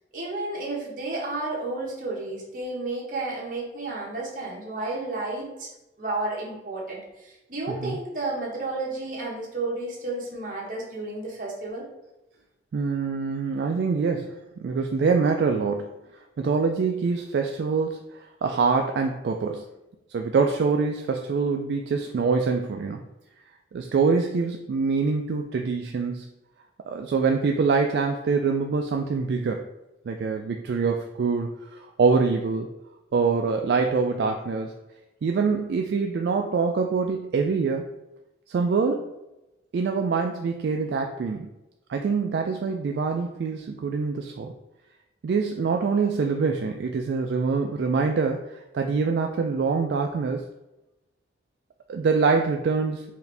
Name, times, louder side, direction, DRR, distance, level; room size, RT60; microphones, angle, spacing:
voice 1, 0.1-5.7 6.0-11.8, right 2 dB, 50° right, -4 dB, 1.1 m, -32 dB
voice 2, 12.7-15.9 16.4-19.6 20.1-23.0 23.7-26.3 26.9-29.6 30.1-32.7 33.1-34.7 35.2-37.8 38.5-39.1 39.7-41.5 41.9-44.5 45.2-50.4 51.9-53.0, right 4 dB, 70° right, 3 dB, 0.3 m, -25 dB
4.6 x 2.6 x 3.3 m, 0.95 s
head